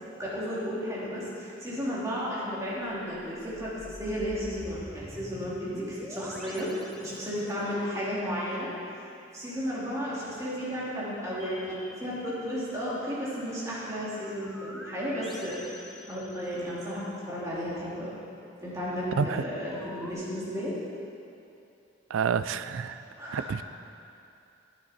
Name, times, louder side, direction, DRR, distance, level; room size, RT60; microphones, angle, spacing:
voice 1, 0.2-8.7 9.3-15.7 16.1-18.1 18.6-20.8 23.2-23.5, equal, 15° right, -8 dB, 2.5 m, -33 dB
sound 1, 3.3-7.8 11.2-13.0 14.4-17.0 19.7-20.1, equal, ahead, 0.5 m, -47 dB
voice 2, 22.1-23.0 23.3-23.6, right 6 dB, 85° right, 12 dB, 0.4 m, -28 dB
11.5 x 9.1 x 4.2 m, 2.6 s
head